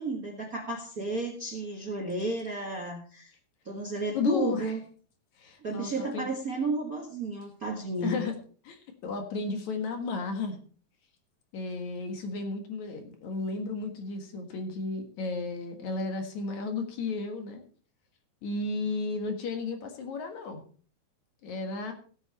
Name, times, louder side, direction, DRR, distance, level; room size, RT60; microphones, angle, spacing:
voice 1, 0.0-3.3 3.6-4.8 5.6-8.2, right 2 dB, 40° right, 1 dB, 1.4 m, -32 dB
voice 2, 4.1-4.7 5.4-6.3 8.0-8.3 8.7-10.6 11.5-17.6 18.4-20.6 21.4-21.9, left 3 dB, 60° left, 5 dB, 2.8 m, -33 dB
16.0 x 8.3 x 4.3 m, 0.42 s
omnidirectional pair, 3.9 m